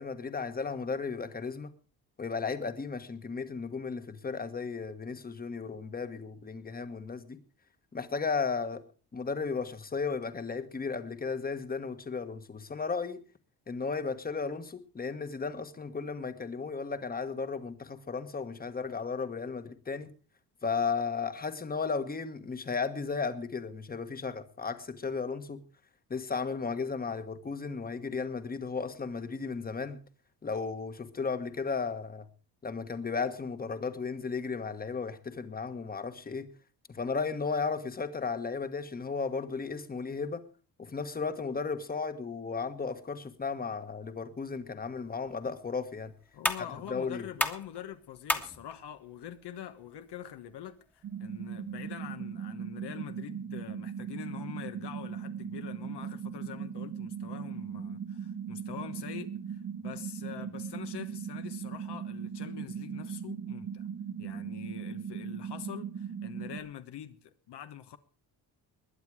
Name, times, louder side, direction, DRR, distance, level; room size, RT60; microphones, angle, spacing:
voice 1, 0.0-1.7 2.2-7.4 7.9-8.8 9.1-13.2 13.7-20.1 20.6-25.6 26.1-30.0 30.4-32.2 32.6-36.5 36.9-40.4 40.8-46.1 46.9-47.3, left 5 dB, 20° left, 1.3 m, -34 dB
sound 1, 44.9-51.9, equal, 5° left, 1.4 m, -38 dB
voice 2, 46.3-63.9 64.2-68.0, left 10 dB, 70° left, 1.3 m, -44 dB
sound 2, 51.0-66.6, right 7 dB, 50° right, 1.6 m, -39 dB
21.0 x 9.3 x 4.8 m
cardioid pair, 150°, 43 cm